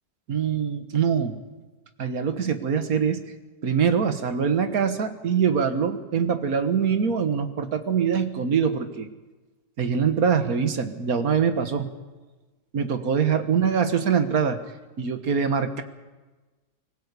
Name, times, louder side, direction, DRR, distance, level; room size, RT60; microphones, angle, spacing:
voice 1, 0.3-1.4 2.0-3.2 3.6-9.1 9.8-11.9 12.7-14.6 15.0-15.8, right 6 dB, 60° right, 8 dB, 1.9 m, -23 dB
24.0 x 16.0 x 8.3 m, 1.2 s
omnidirectional pair, 1.8 m